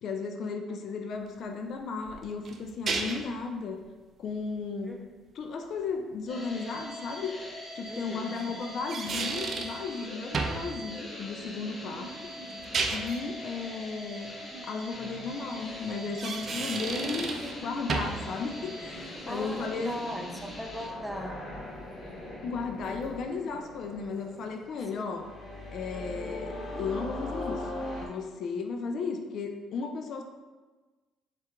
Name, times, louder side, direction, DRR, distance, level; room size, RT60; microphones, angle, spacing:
voice 1, 0.0-3.8 4.2-4.9 5.4-7.3 7.7-12.2 12.9-14.3 14.6-17.3 17.6-20.0 22.4-25.3 25.7-30.2, left 4 dB, 65° left, 5 dB, 0.4 m, -35 dB
sound 1, 2.1-3.4 6.6-6.7 8.6-9.8 10.3-10.7 12.5-13.2 16.0-17.6 17.9-18.3, right 4 dB, 55° right, 0.4 m, -32 dB
sound 2, 6.3-20.9, equal, 30° left, 1.5 m, -42 dB
voice 2, 7.9-8.6 17.0-17.6 19.2-21.4 24.9-25.2, equal, 5° right, 2 dB, 0.6 m, -39 dB
sound 3, 14.9-28.1, left 1 dB, 45° left, 1.2 m, -42 dB
4.3 x 2.4 x 3.5 m, 1.3 s
supercardioid pair, 70°, 0 cm